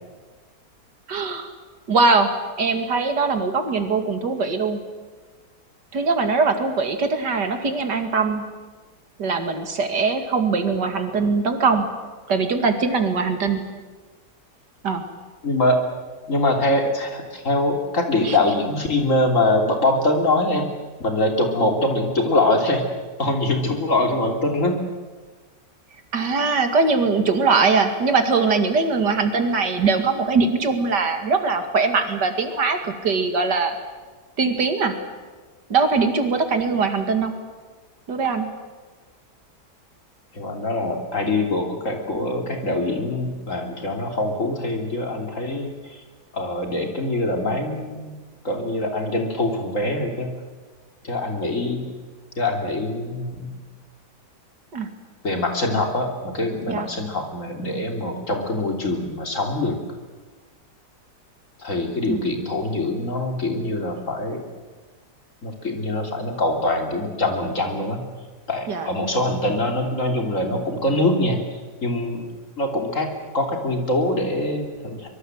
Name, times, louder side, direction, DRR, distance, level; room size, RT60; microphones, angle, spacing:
voice 1, 1.1-1.5 1.9-2.3 2.6-4.8 5.9-8.4 9.2-11.9 12.3-13.6 14.8-15.0 18.2-18.4 26.1-33.8 34.4-35.0 35.7-37.3 38.1-38.5 54.7-54.9 56.7-56.9 62.1-62.2 68.7-68.9, right 4 dB, 85° right, 7 dB, 2.8 m, -21 dB
voice 2, 15.4-15.8 16.3-20.7 21.0-22.8 23.2-24.8 40.3-46.0 46.3-48.2 48.4-50.3 51.0-51.8 52.4-53.5 55.2-59.8 61.6-64.4 65.4-68.0 68.5-75.1, left 2 dB, 50° left, 3 dB, 3.6 m, -23 dB
24.0 x 22.0 x 8.0 m, 1.4 s
omnidirectional pair, 1.8 m